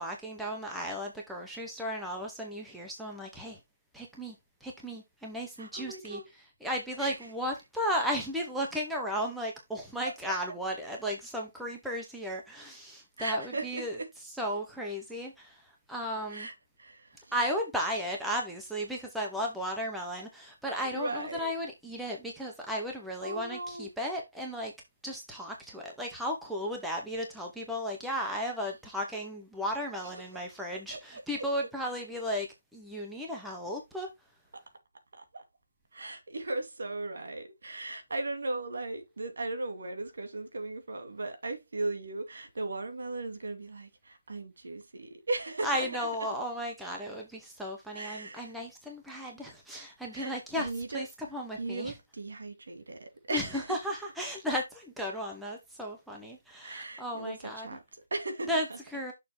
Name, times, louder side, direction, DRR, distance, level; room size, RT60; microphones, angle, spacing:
voice 1, 0.0-3.6 3.9-4.4 4.6-16.5 17.3-24.7 25.0-34.1 45.6-51.9 53.3-57.8 58.4-59.1, equal, ahead, 0.8 m, -35 dB
voice 2, 5.6-6.3 7.0-7.3 13.2-14.1 16.3-17.3 20.8-21.5 23.2-23.9 30.0-30.4 30.9-31.4 35.1-35.4 35.9-46.1 47.9-48.5 50.1-51.1 51.6-53.8 56.6-58.8, right 2 dB, 65° right, 2.4 m, -37 dB
6.6 x 3.4 x 5.8 m
hypercardioid pair, 175°, 0 cm